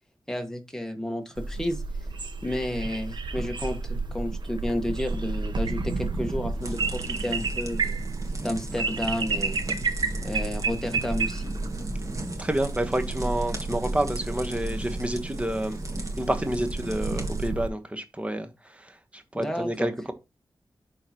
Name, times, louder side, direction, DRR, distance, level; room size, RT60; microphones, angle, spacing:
voice 1, 0.3-1.8 2.4-8.0 8.4-9.6 10.2-11.5 19.3-19.9, left 1 dB, 5° left, 1.5 m, -31 dB
sound 1, 1.4-17.7, right 3 dB, 75° right, 0.9 m, -31 dB
sound 2, 6.6-17.5, right 1 dB, 40° right, 1.8 m, -38 dB
voice 2, 12.4-15.8 16.2-20.1, right 1 dB, 15° right, 1.2 m, -29 dB
11.0 x 3.8 x 3.0 m
wide cardioid pair, 85°, 8 cm